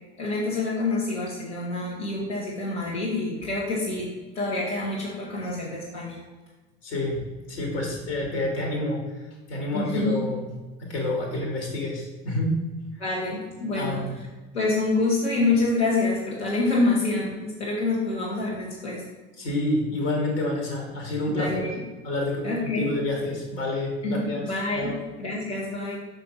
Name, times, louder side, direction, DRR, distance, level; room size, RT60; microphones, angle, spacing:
voice 1, 0.2-6.2 9.7-10.2 13.0-14.2 14.5-19.0 21.3-21.7 22.4-23.0 24.0-26.0, left 3 dB, 90° left, -6 dB, 1.7 m, -27 dB
voice 2, 6.8-7.2 7.5-9.0 9.5-10.5 10.8-12.6 13.8-14.2 19.4-21.7 22.0-24.5 24.7-25.0, left 1 dB, 70° left, 0 dB, 2.7 m, -28 dB
5.8 x 5.7 x 5.4 m, 1.2 s
hypercardioid pair, 75°, 33 cm